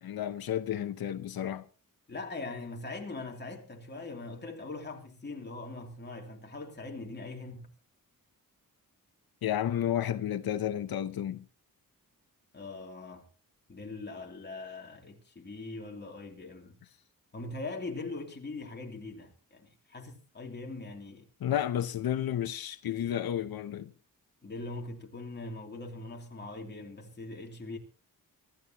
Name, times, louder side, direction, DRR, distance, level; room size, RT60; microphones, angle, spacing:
voice 1, 0.0-1.6 9.4-11.5 21.4-23.9, left 10 dB, 85° left, 0.8 m, -32 dB
voice 2, 2.1-7.7 12.5-13.3 13.7-16.8 17.3-21.3 24.4-27.8, left 3 dB, 30° left, 2.9 m, -41 dB
24.5 x 13.0 x 3.0 m
wide cardioid pair, 170°, 35 cm